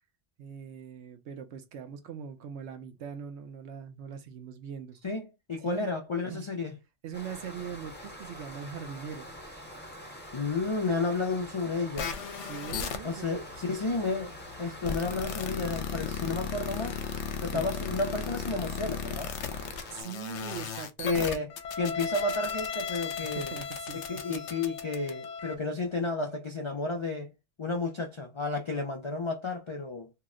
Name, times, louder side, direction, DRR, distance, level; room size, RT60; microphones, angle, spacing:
voice 1, 0.4-5.0 5.6-5.9 6.3-6.5 7.0-9.3 12.4-13.4 17.5-17.7 19.9-21.4 23.2-24.2, right 7 dB, 70° right, 0.9 m, -41 dB
voice 2, 5.0-6.7 10.3-12.1 13.0-17.0 17.4-19.3 21.0-21.5 21.8-23.5 24.1-27.3 27.6-30.1, left 3 dB, 50° left, 0.3 m, -32 dB
sound 1, 7.1-20.0, equal, 10° left, 0.7 m, -45 dB
sound 2, 12.0-25.6, left 6 dB, 75° left, 0.9 m, -36 dB
2.8 x 2.1 x 3.6 m
omnidirectional pair, 1.2 m